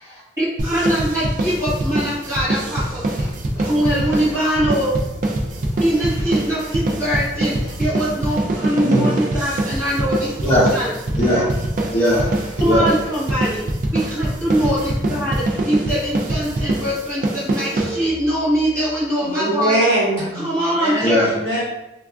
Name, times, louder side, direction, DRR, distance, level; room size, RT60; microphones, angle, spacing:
voice 1, 0.4-3.0 3.5-5.0 5.8-11.0 12.6-13.7 13.9-19.8 20.3-21.2, equal, 15° right, -11 dB, 1.2 m, -22 dB
sound 1, 0.6-18.4, right 1 dB, 45° right, 0.3 m, -23 dB
voice 2, 8.8-9.1 10.4-10.7 11.2-11.6 11.9-12.9 21.0-21.3, left 1 dB, 35° left, -12 dB, 0.7 m, -19 dB
voice 3, 19.3-21.6, right 1 dB, 85° right, -6 dB, 0.9 m, -22 dB
3.3 x 2.3 x 2.3 m, 0.95 s
head